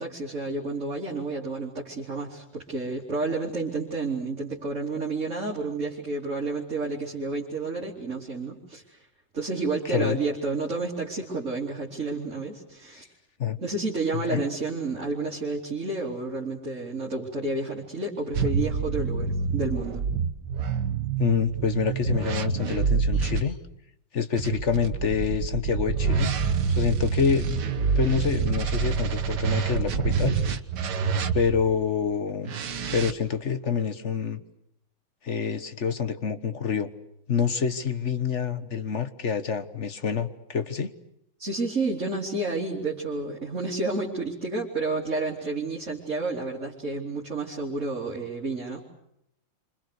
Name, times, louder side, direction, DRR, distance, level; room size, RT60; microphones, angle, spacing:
voice 1, 0.0-9.0 9.3-13.1 13.6-20.0 41.4-48.9, right 3 dB, 40° right, -4 dB, 3.6 m, -30 dB
voice 2, 9.9-10.2 13.4-13.6 14.3-14.5 21.2-23.6 24.1-26.3 26.7-27.6 28.0-30.4 31.3-32.6 32.9-34.4 35.2-36.9 37.3-40.9, left 6 dB, 40° left, 11 dB, 1.4 m, -27 dB
sound 1, 18.3-23.4 24.4-31.7 32.4-33.1, right 5 dB, 60° right, 1.8 m, -27 dB
28.5 x 26.0 x 6.7 m, 0.76 s
omnidirectional pair, 2.1 m